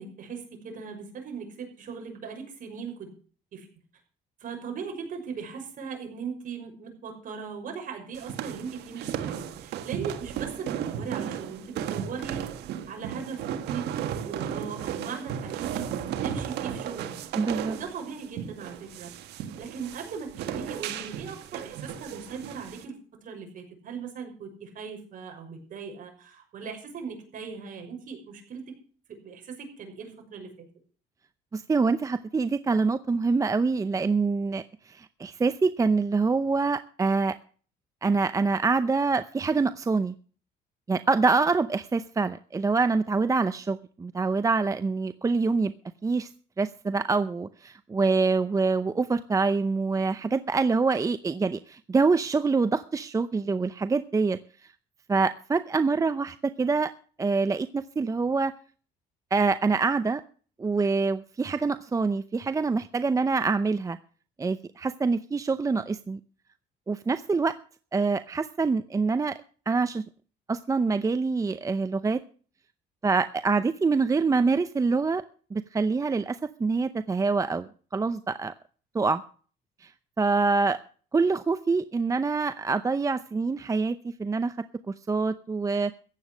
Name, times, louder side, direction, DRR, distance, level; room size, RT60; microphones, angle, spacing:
voice 1, 0.0-3.1 3.5-3.7 4.4-12.4 12.9-15.9 16.2-17.2 17.7-19.1 19.6-23.0 23.2-28.8 29.1-30.7, right 6 dB, 55° right, 3 dB, 6.0 m, -39 dB
sound 1, 8.1-22.8, right 9 dB, 80° right, 1.6 m, -35 dB
voice 2, 17.4-17.8 31.5-37.4 38.0-40.1 40.9-45.7 46.0-46.3 46.6-54.4 55.1-56.9 57.2-58.5 59.3-60.2 60.6-64.0 64.4-66.2 66.9-67.5 67.9-69.4 69.7-70.0 70.5-72.2 73.0-75.2 75.5-78.5 78.9-79.2 79.8-79.9 80.2-80.8 81.1-84.6 85.1-85.9, right 4 dB, 20° right, 12 dB, 0.6 m, -25 dB
15.0 x 9.3 x 6.4 m, 0.42 s
cardioid pair, 110°, 17 cm